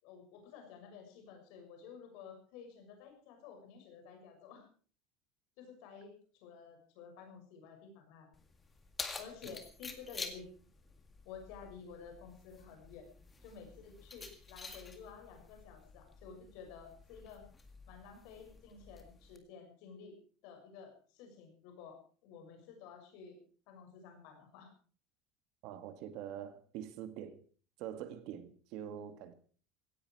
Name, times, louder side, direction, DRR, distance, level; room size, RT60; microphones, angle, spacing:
voice 1, 0.0-4.7 5.6-8.3 9.2-10.5 11.2-13.1 13.4-17.4 17.9-20.2 20.4-22.0 22.2-23.4 23.7-24.7, left 6 dB, 60° left, 6.5 m, -52 dB
Keys jangling, 8.3-19.4, left 4 dB, 15° left, 1.9 m, -50 dB
voice 2, 25.6-27.4 27.8-29.3, right 10 dB, 55° right, 1.9 m, -45 dB
17.5 x 16.0 x 4.8 m
cardioid pair, 175°, 0 cm